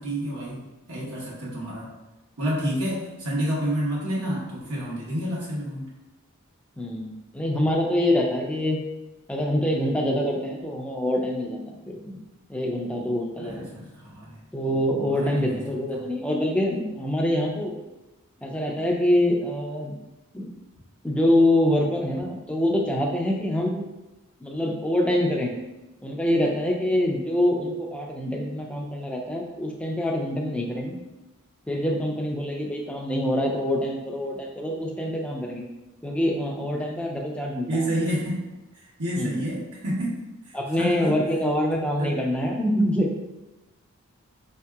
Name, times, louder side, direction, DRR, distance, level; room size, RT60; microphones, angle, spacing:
voice 1, 0.0-1.9 2.4-5.9 13.4-14.4 15.0-15.6 15.9-16.1 37.7-38.4 38.7-40.2 40.4-41.2 42.0-42.2, right 1 dB, 85° right, -7 dB, 1.1 m, -29 dB
voice 2, 6.8-8.8 9.3-12.2 12.5-13.6 14.5-17.8 18.4-19.9 20.3-20.5 21.0-23.9 24.4-25.5 26.0-31.0 31.7-35.6 36.0-38.0 39.2-39.3 40.5-43.2, left 1 dB, 5° left, 0 dB, 0.4 m, -25 dB
4.5 x 2.7 x 2.3 m, 1.0 s
head